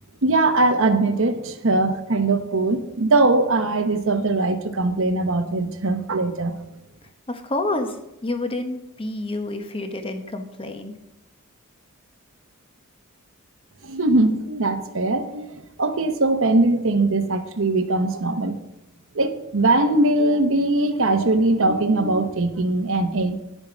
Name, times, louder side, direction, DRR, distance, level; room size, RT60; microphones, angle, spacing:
voice 1, 0.2-6.5 13.8-18.6 19.1-23.4, right 2 dB, 65° right, 1.0 m, -21 dB
voice 2, 7.3-8.0 8.2-10.9, left 2 dB, 25° left, 1.0 m, -28 dB
10.5 x 7.2 x 5.1 m
head